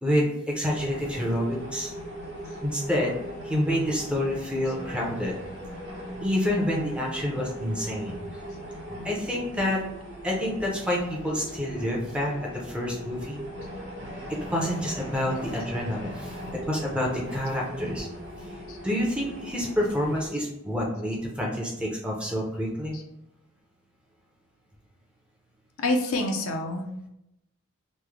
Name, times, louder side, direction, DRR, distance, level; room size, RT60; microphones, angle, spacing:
voice 1, 0.0-1.9 2.6-3.1 3.4-5.4 6.2-8.4 9.0-9.8 10.2-13.4 14.3-16.4 16.7-18.1 18.8-23.0, equal, 5° right, -2 dB, 0.5 m, -28 dB
sound 1, 0.6-20.3, equal, 50° right, 1.0 m, -39 dB
voice 2, 25.8-27.1, left 2 dB, 85° left, 3 dB, 0.5 m, -27 dB
3.1 x 2.1 x 3.5 m, 0.84 s
head